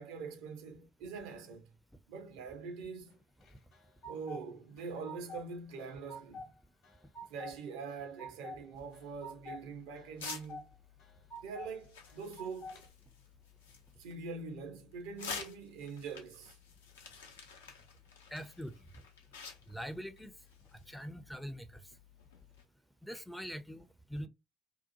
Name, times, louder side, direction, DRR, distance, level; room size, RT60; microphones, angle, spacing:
voice 1, 0.0-1.7 2.1-3.2 4.1-6.5 7.3-10.6 11.4-12.8 14.0-16.6, right 5 dB, 65° right, 0.6 m, -44 dB
sound 1, 3.4-4.4 4.8-5.5 5.8-6.5 6.8-7.5 7.9-8.6 8.9-9.6 10.0-10.6 11.0-11.7 12.1-12.8, equal, 55° left, 1.0 m, -47 dB
sound 2, 8.8-22.6, left 5 dB, 80° left, 0.5 m, -51 dB
voice 2, 18.3-18.7 19.7-20.3 20.9-21.7 23.0-24.3, equal, ahead, 0.4 m, -43 dB
2.7 x 2.1 x 2.6 m
figure-of-eight pair, 55°, 0 cm